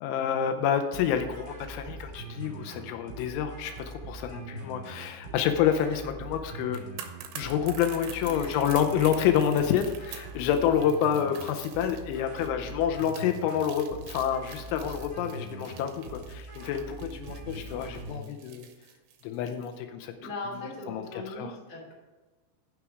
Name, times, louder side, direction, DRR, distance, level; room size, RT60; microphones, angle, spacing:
voice 1, 0.0-6.8 7.4-18.7 19.2-20.3 20.6-21.5, left 9 dB, 85° left, 6 dB, 3.1 m, -28 dB
sound 1, 0.9-18.2, right 2 dB, 15° right, 3.0 m, -42 dB
sound 2, 6.6-19.8 20.1-20.2, right 9 dB, 75° right, 2.5 m, -47 dB
voice 2, 8.3-8.6 20.2-21.9, left 2 dB, 25° left, -4 dB, 2.5 m, -39 dB
10.0 x 6.2 x 4.8 m, 1.2 s
omnidirectional pair, 5.5 m